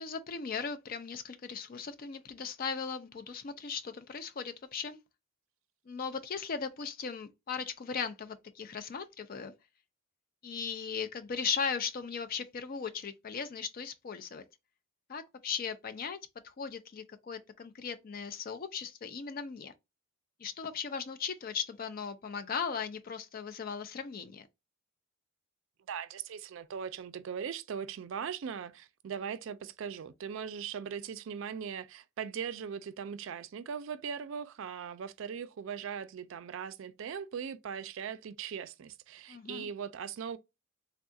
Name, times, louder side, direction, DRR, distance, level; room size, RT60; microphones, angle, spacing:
voice 1, 0.0-5.0 5.9-9.5 10.4-14.5 15.1-19.7 20.4-24.5 39.3-39.7, left 6 dB, 40° left, 0.4 m, -38 dB
voice 2, 25.9-40.4, right 7 dB, 65° right, 0.3 m, -39 dB
3.5 x 2.3 x 2.6 m
head